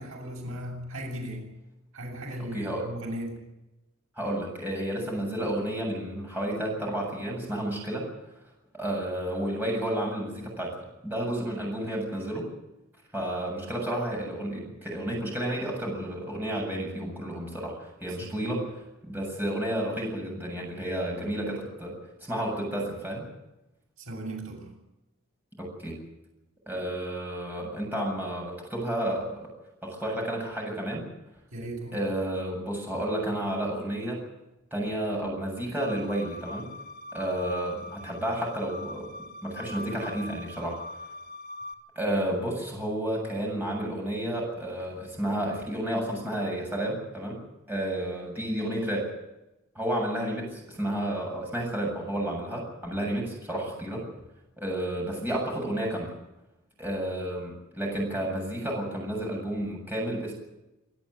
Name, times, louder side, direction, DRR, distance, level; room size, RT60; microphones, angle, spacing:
voice 1, 0.0-1.5 1.9-3.4 18.2-18.7 24.0-24.7 31.5-32.0, right 1 dB, 75° right, 0 dB, 7.8 m, -37 dB
voice 2, 2.5-2.9 4.2-8.1 8.7-10.8 11.0-12.5 13.1-18.7 19.0-22.0 22.3-23.3 25.6-26.0 26.7-29.5 29.8-31.0 31.9-34.2 34.7-36.7 37.1-39.1 39.4-40.8 42.0-47.4 47.7-49.1 49.7-54.1 54.6-56.1 56.8-60.3, right 1 dB, 10° right, -2 dB, 7.7 m, -31 dB
sound 1, 35.8-41.7, left 2 dB, 45° left, 3.0 m, -42 dB
26.0 x 12.5 x 9.9 m, 0.97 s
head